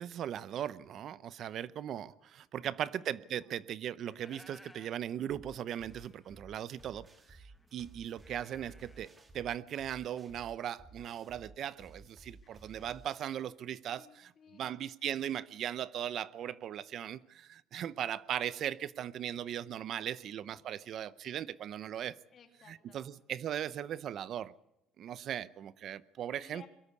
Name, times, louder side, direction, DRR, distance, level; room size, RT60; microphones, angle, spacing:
voice 1, 0.0-7.4 7.7-14.1 14.5-22.2 22.7-24.5 25.0-26.6, right 10 dB, 50° right, 0.7 m, -38 dB
voice 2, 2.5-3.6 12.4-12.7 13.9-14.8 19.3-19.4 22.3-23.1 26.3-26.7, left 7 dB, 40° left, 2.8 m, -59 dB
sound 1, 4.1-5.0 5.3-5.4 5.6-9.2, left 1 dB, 5° left, 1.1 m, -60 dB
sound 2, 5.3-13.3, right 3 dB, 20° right, 2.1 m, -56 dB
22.5 x 13.0 x 9.7 m
cardioid pair, 140°, 0 cm